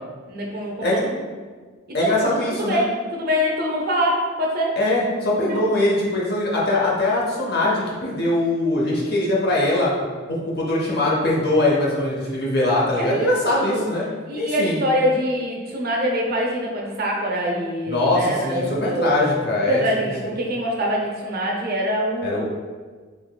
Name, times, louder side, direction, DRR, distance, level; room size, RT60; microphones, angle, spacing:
voice 1, 0.3-1.2 2.0-4.8 5.5-5.6 13.0-13.9 14.3-19.2 19.7-22.4, equal, 45° right, -1 dB, 0.5 m, -24 dB
voice 2, 1.9-2.8 4.8-9.9 10.3-14.1 14.4-14.8 17.9-20.3 22.2-22.4, left 2 dB, 50° left, -4 dB, 0.7 m, -22 dB
3.6 x 3.2 x 2.2 m, 1.5 s
head